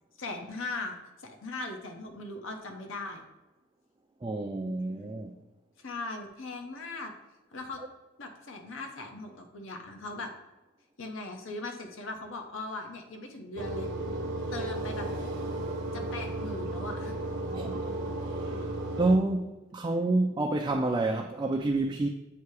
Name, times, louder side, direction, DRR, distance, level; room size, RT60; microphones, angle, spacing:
voice 1, 0.2-3.2 5.8-7.1 7.5-7.8 8.2-10.3 11.0-13.9 14.5-15.1 15.9-17.2 17.4-17.5, left 2 dB, 65° left, 4 dB, 0.8 m, -39 dB
voice 2, 4.2-5.3 17.5-17.9 18.2-18.6 19.0-22.1, right 2 dB, 20° right, 2 dB, 0.3 m, -28 dB
sound 1, 13.6-19.2, right 1 dB, 55° right, 0.7 m, -34 dB
8.0 x 2.8 x 4.7 m, 1.1 s
head